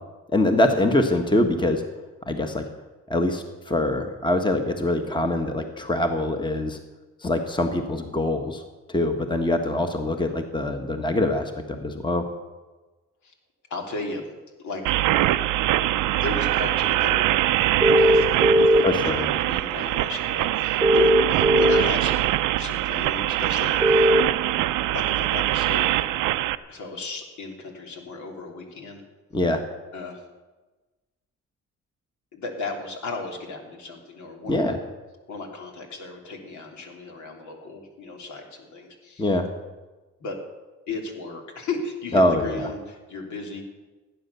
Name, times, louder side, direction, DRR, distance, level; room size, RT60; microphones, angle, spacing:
voice 1, 0.3-1.8 2.3-2.6 3.1-6.8 7.2-8.6 8.9-12.2 18.8-19.3 29.3-29.6 34.5-34.8 39.2-39.5 42.1-42.7, left 1 dB, 15° left, 5 dB, 1.5 m, -23 dB
voice 2, 13.7-14.3 14.6-14.8 16.1-17.3 17.5-24.1 24.9-26.1 26.7-29.0 29.9-30.2 32.3-34.8 35.3-39.3 40.2-40.4 40.9-43.6, left 3 dB, 70° left, 2 dB, 3.3 m, -35 dB
sound 1, 14.8-26.5, right 15 dB, 90° right, 0.6 m, -23 dB
sound 2, 17.8-18.8 20.8-21.8 23.8-24.2, equal, 5° right, 0.6 m, -17 dB
16.5 x 9.6 x 6.9 m, 1.2 s
cardioid pair, 90°, 30 cm